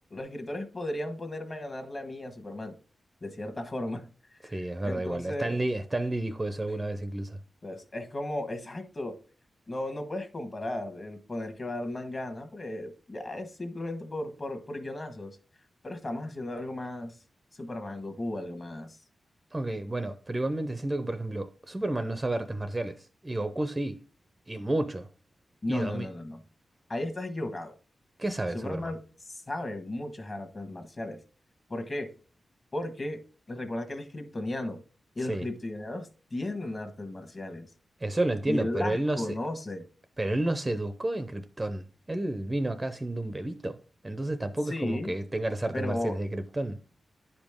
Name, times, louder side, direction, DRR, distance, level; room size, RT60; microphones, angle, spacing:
voice 1, 0.1-2.7 3.2-4.1 4.4-5.6 7.6-9.2 9.7-15.4 15.8-17.1 17.6-19.0 25.6-26.4 26.9-27.7 28.5-29.0 29.3-31.2 31.7-32.1 32.7-33.2 33.5-34.8 35.2-37.7 38.5-39.8 44.7-45.1 45.7-46.2, left 1 dB, 30° left, 1.3 m, -35 dB
voice 2, 4.4-7.4 19.5-24.0 24.5-25.1 25.7-26.1 28.2-28.9 35.3-35.5 38.0-39.4 40.2-43.8 44.0-46.8, right 1 dB, 15° right, 0.6 m, -31 dB
9.9 x 5.2 x 3.6 m
wide cardioid pair, 145°, 0 cm